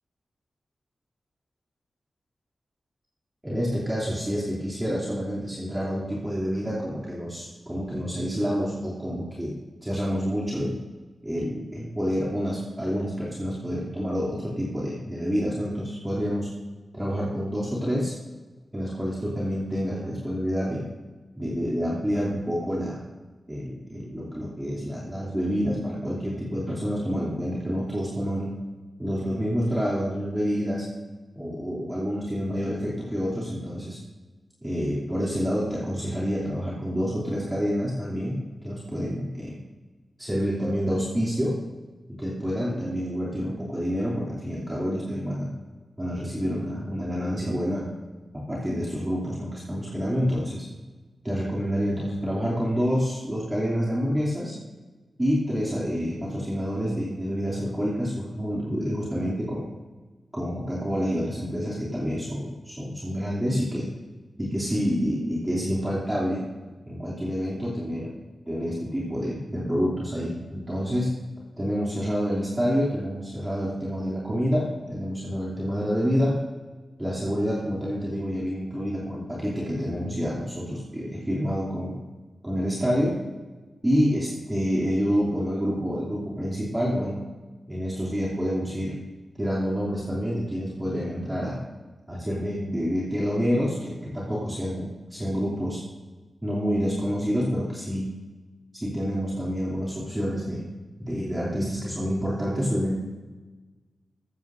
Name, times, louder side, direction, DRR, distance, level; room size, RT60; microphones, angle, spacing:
voice 1, 3.4-9.5 9.8-10.8 11.2-16.5 16.9-18.1 18.7-20.8 21.4-23.0 23.5-28.5 29.0-30.8 31.3-34.0 34.6-39.6 40.2-41.6 42.2-45.5 46.0-47.9 48.3-50.6 51.2-54.5 55.2-59.7 60.3-63.9 64.4-66.4 66.9-68.1 68.5-71.1 71.6-76.4 77.0-82.0 82.4-83.2 83.8-87.2 87.7-89.0 89.4-91.6 92.1-95.8 96.4-98.1 98.7-100.6 101.0-103.0, equal, 15° right, -7 dB, 2.8 m, -28 dB
15.0 x 14.5 x 2.6 m, 1.3 s
wide cardioid pair, 135°, 0 cm